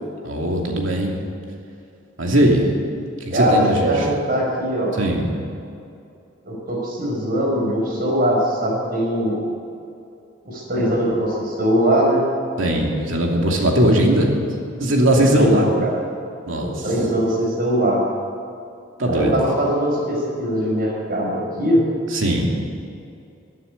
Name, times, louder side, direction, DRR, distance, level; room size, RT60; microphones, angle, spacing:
voice 1, 0.2-1.2 2.2-2.6 3.3-3.9 5.0-5.3 12.6-14.3 14.8-15.7 16.5-16.8 19.0-19.4 22.1-22.5, right 1 dB, 80° right, 0 dB, 2.8 m, -19 dB
voice 2, 3.3-5.0 6.4-9.4 10.4-12.2 15.2-16.0 16.6-18.0 19.1-21.8, equal, 50° right, -2 dB, 4.9 m, -21 dB
15.0 x 9.6 x 9.9 m, 2.6 s
head